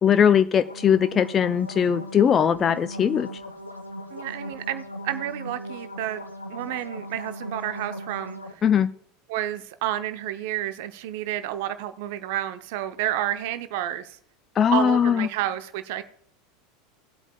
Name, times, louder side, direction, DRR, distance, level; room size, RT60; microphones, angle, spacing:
voice 1, 0.0-3.3 8.6-8.9 14.6-15.3, left 8 dB, 30° left, 11 dB, 0.4 m, -20 dB
sound 1, 0.5-8.5, equal, 85° left, 0.9 m, -38 dB
voice 2, 4.1-6.2 6.5-8.6 9.3-14.2 14.7-16.0, right 13 dB, 55° right, 11 dB, 0.6 m, -30 dB
19.0 x 8.0 x 2.3 m, 0.64 s
figure-of-eight pair, 80°, 0 cm